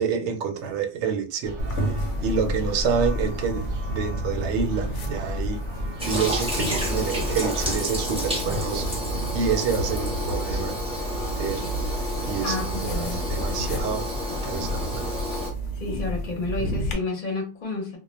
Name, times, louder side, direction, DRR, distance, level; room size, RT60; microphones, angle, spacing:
voice 1, 0.0-1.6 1.9-5.6 6.1-9.0 9.3-10.8 11.4-12.6 12.8-15.1, right 6 dB, 75° right, 0.9 m, -28 dB
Church bell, 1.4-7.7, equal, 50° right, 0.7 m, -35 dB
sound 1, 1.6-16.9, right 1 dB, 80° left, 1.0 m, -31 dB
Toilet flush, 6.0-15.5, equal, 5° right, 0.6 m, -30 dB
voice 2, 12.4-13.2 15.7-18.0, left 3 dB, 45° left, 0.8 m, -30 dB
2.2 x 2.1 x 2.9 m
omnidirectional pair, 1.2 m